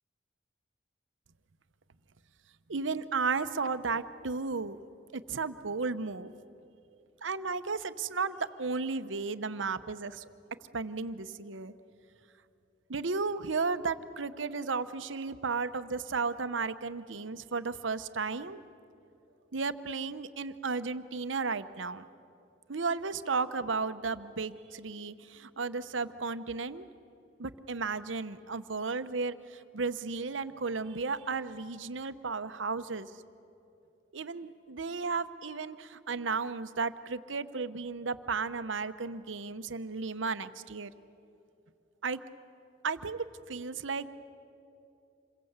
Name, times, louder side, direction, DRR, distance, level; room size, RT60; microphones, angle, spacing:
voice 1, 2.7-4.8 5.1-6.3 7.2-10.2 10.7-11.7 12.9-18.6 19.5-22.0 22.7-26.9 27.4-33.1 34.1-40.9 42.0-42.2 42.8-44.1, right 4 dB, 90° right, 12 dB, 0.9 m, -34 dB
27.0 x 22.5 x 8.1 m, 2.7 s
head